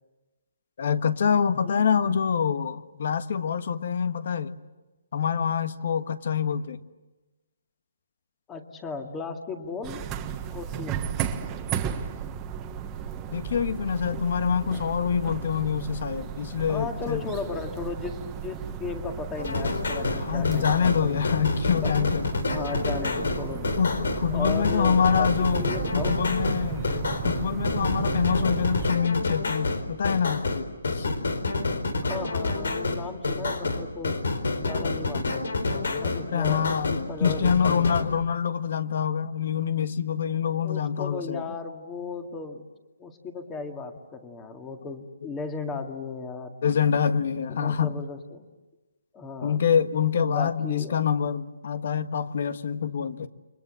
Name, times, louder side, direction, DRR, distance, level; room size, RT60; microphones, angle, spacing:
voice 1, 0.8-4.5 5.1-6.8 13.3-17.2 20.0-22.3 23.1-23.2 23.7-31.1 36.3-41.4 45.7-45.8 46.6-47.9 49.4-53.3, left 7 dB, 50° left, 11 dB, 1.5 m, -26 dB
voice 2, 8.5-10.1 10.5-11.1 16.7-21.2 21.7-22.0 22.5-23.7 24.3-26.3 32.0-34.2 34.6-38.0 40.6-42.6 43.0-46.6 47.5-48.5 49.1-49.6 50.2-51.0, left 4 dB, 10° left, 5 dB, 2.1 m, -36 dB
sound 1, 9.8-28.9, right 8 dB, 15° right, 1.5 m, -34 dB
sound 2, 19.4-38.0, left 3 dB, 80° left, 4.3 m, -28 dB
30.0 x 24.5 x 7.7 m, 1.1 s
hypercardioid pair, 165°, 0 cm